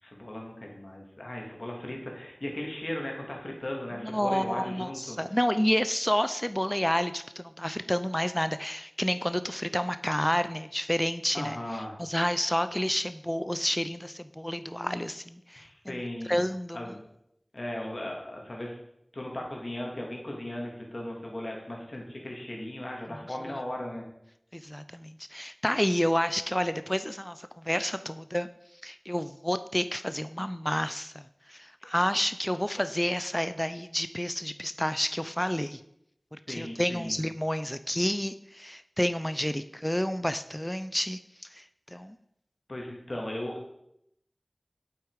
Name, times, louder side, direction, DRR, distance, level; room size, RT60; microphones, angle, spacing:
voice 1, 0.0-5.2 11.3-12.0 15.5-16.4 16.7-17.0 17.5-18.8 19.1-24.0 31.8-31.9 36.5-37.2 41.9-42.0 42.7-43.7, left 1 dB, 60° left, 0 dB, 2.4 m, -37 dB
voice 2, 4.0-11.6 12.0-16.0 16.3-16.8 23.4-23.5 24.5-28.5 28.8-35.8 36.5-42.2, equal, 10° left, 12 dB, 0.5 m, -30 dB
8.3 x 8.1 x 4.8 m, 0.78 s
wide cardioid pair, 40°, 0 cm